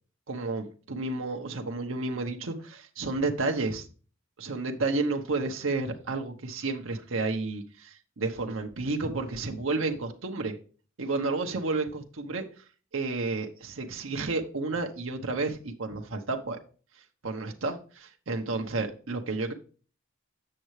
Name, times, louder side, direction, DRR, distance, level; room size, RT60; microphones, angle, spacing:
voice 1, 0.3-3.9 4.4-10.6 11.0-12.4 12.9-16.6 17.2-19.5, right 3 dB, 70° right, 3 dB, 0.9 m, -31 dB
7.6 x 6.6 x 3.2 m, 0.38 s
head